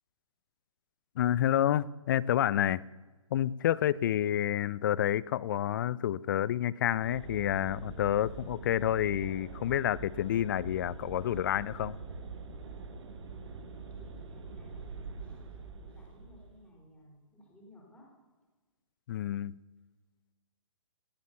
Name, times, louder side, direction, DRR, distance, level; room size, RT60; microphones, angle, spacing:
voice 1, 1.2-2.8 3.3-12.0 19.1-19.6, left 11 dB, 40° left, 0.4 m, -29 dB
sound 1, 7.0-16.7, right 4 dB, 55° right, 1.8 m, -44 dB
voice 2, 13.1-18.1, left 1 dB, 5° left, 4.2 m, -58 dB
18.5 x 7.3 x 7.0 m
hypercardioid pair, 135°, 17 cm